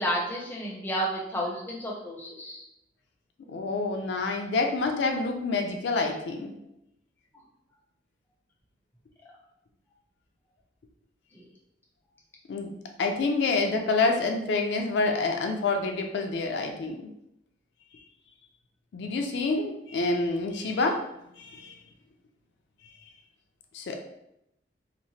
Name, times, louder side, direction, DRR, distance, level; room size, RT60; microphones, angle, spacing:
voice 1, 0.0-2.6 11.3-11.4, equal, 10° left, -4 dB, 0.4 m, -31 dB
voice 2, 3.5-6.5 12.5-12.7 13.0-17.1 18.9-21.0 21.4-21.7 23.7-24.0, left 3 dB, 75° left, 4 dB, 0.4 m, -27 dB
2.8 x 2.0 x 2.6 m, 0.82 s
head